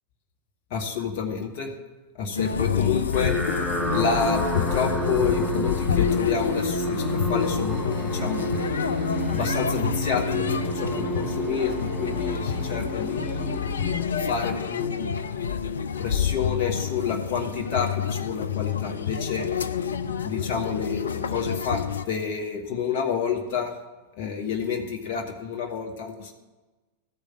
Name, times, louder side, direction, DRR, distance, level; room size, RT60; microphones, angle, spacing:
voice 1, 0.7-1.7 2.2-3.3 3.9-8.5 9.3-13.6 14.2-15.1 16.0-19.5 20.2-23.7 24.2-26.3, left 6 dB, 45° left, 3 dB, 1.4 m, -29 dB
sound 1, 2.4-22.1, left 7 dB, 70° left, 0.5 m, -28 dB
sound 2, 3.1-14.5, right 1 dB, 10° left, 1.3 m, -31 dB
13.5 x 5.1 x 7.7 m, 1.2 s
figure-of-eight pair, 90°, 0 cm